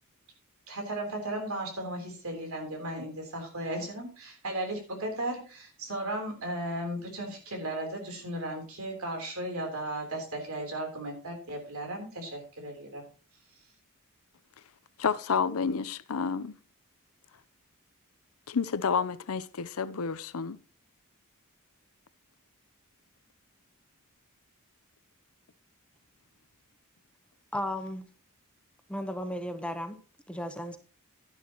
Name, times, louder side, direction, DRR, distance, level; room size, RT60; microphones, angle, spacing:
voice 1, 0.7-13.0, right 1 dB, 70° right, 3.6 m, -36 dB
voice 2, 15.0-16.6 18.5-20.6, left 6 dB, 75° left, 0.6 m, -30 dB
voice 3, 27.5-28.1 28.9-30.0 30.3-30.8, equal, 5° left, 0.9 m, -34 dB
11.5 x 11.0 x 3.0 m
head